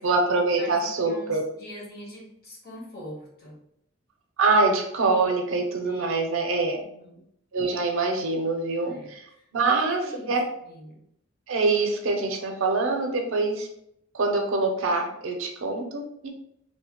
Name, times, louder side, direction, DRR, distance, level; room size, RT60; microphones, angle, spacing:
voice 1, 0.0-1.5 4.4-6.8 7.5-9.2 9.5-10.5 11.5-13.7 14.1-16.3, right 3 dB, 65° right, 3 dB, 0.5 m, -24 dB
voice 2, 0.6-3.6 5.8-6.3 6.8-7.2 8.8-10.3 10.6-11.0, equal, 50° left, -2 dB, 0.9 m, -43 dB
2.7 x 2.1 x 2.9 m, 0.74 s
head